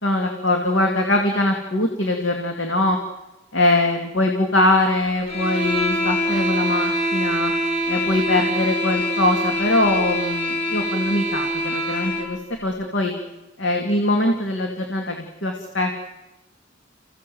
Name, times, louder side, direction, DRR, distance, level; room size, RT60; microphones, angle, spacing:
voice 1, 0.0-3.0 3.5-7.5 7.9-13.1 13.6-16.0, left 2 dB, 70° left, 2 dB, 2.5 m, -22 dB
sound 1, 5.3-12.3, equal, 30° left, 5.5 m, -24 dB
29.5 x 16.5 x 7.8 m, 1.0 s
head